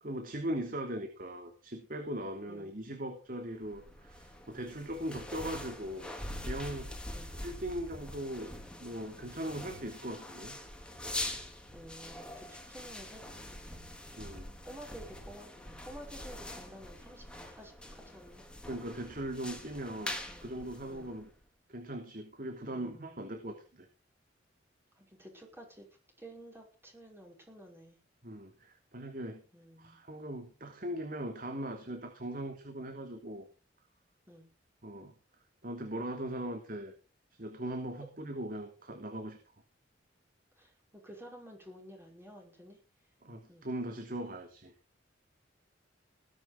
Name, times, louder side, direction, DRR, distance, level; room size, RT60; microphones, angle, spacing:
voice 1, 0.0-6.1 6.4-7.2 7.4-10.6 14.2-14.5 18.6-21.3 21.7-23.9 28.2-29.4 29.8-33.5 34.8-35.1 35.6-36.9 37.4-39.4 43.2-44.7, right 1 dB, 50° right, 5 dB, 3.0 m, -40 dB
sound 1, 3.6-21.4, left 1 dB, 5° left, 3.9 m, -44 dB
voice 2, 11.7-13.8 14.6-18.5 20.3-20.5 20.9-21.2 22.7-23.3 25.0-25.9 26.2-28.0 29.5-30.0 34.3-34.5 40.6-42.8 43.5-43.7, right 1 dB, 15° right, 0 dB, 5.5 m, -51 dB
20.0 x 10.5 x 5.2 m, 0.36 s
head